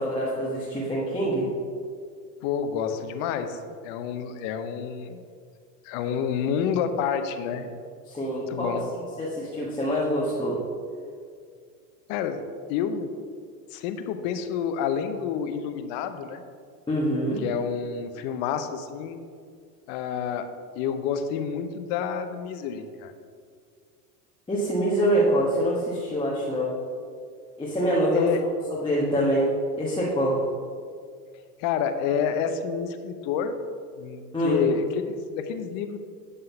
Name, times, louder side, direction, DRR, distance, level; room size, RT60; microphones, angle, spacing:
voice 1, 0.0-1.5 8.1-8.8 9.2-10.6 16.9-17.4 24.5-26.7 27.6-28.3 28.7-29.5 29.8-30.4 34.3-34.6, equal, 10° left, -7 dB, 1.2 m, -25 dB
voice 2, 2.4-3.6 3.8-5.2 5.8-7.8 8.5-8.9 12.1-12.4 12.7-13.1 13.7-16.4 17.4-19.2 19.9-20.5 20.7-23.1 28.1-28.4 31.6-33.6 34.0-36.0, left 7 dB, 50° left, 8 dB, 0.8 m, -29 dB
8.2 x 3.7 x 5.6 m, 2.1 s
hypercardioid pair, 105°, 48 cm